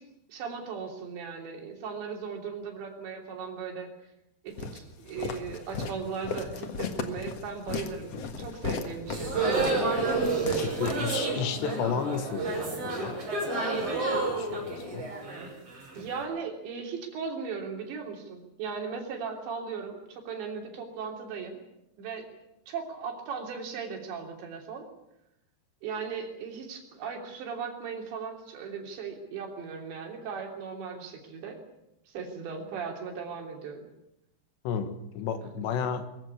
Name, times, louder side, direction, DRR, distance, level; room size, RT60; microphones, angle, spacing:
voice 1, 0.3-3.9 4.4-9.4 15.9-21.6 22.0-22.3 22.7-24.9 25.8-31.6 32.1-33.9 35.4-35.5, right 5 dB, 80° right, 2 dB, 5.4 m, -37 dB
Walk footsteps, 4.6-11.5, left 5 dB, 55° left, 1.9 m, -36 dB
sound 1, 9.1-16.1, right 3 dB, 35° right, 7.1 m, -30 dB
voice 2, 10.6-13.2 13.8-15.1 34.7-36.1, left 6 dB, 75° left, 9 dB, 3.8 m, -33 dB
22.5 x 15.5 x 9.8 m, 0.86 s
omnidirectional pair, 5.0 m